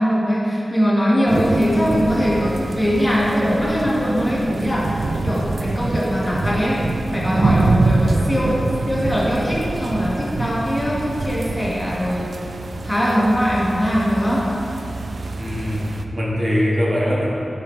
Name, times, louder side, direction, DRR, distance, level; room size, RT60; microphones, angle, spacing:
voice 1, 0.0-12.4 12.8-14.6, equal, 10° left, -5 dB, 1.5 m, -21 dB
sound 1, 1.3-16.0, right 3 dB, 65° right, 0.4 m, -25 dB
voice 2, 15.4-17.4, equal, 40° right, -5 dB, 1.5 m, -22 dB
9.2 x 5.8 x 3.3 m, 2.7 s
wide cardioid pair, 60°, 0 cm